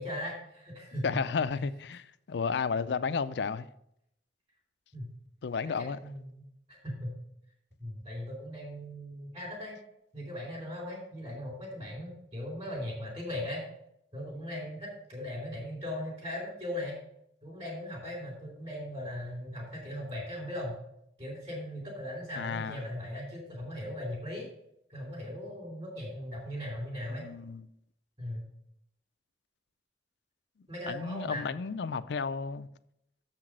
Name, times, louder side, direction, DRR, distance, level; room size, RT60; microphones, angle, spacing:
voice 1, 0.0-1.1 4.9-5.1 5.7-5.8 6.0-6.4 6.7-7.1 7.8-9.8 10.1-13.6 14.1-17.0 17.4-20.8 21.2-24.5 24.9-27.3 28.2-28.5 30.7-31.5, left 1 dB, 35° right, 3.5 m, -38 dB
voice 2, 1.0-3.7 5.4-6.0 22.4-22.8 27.1-27.7 30.9-32.7, left 5 dB, 70° left, 0.4 m, -32 dB
7.3 x 5.9 x 6.2 m
head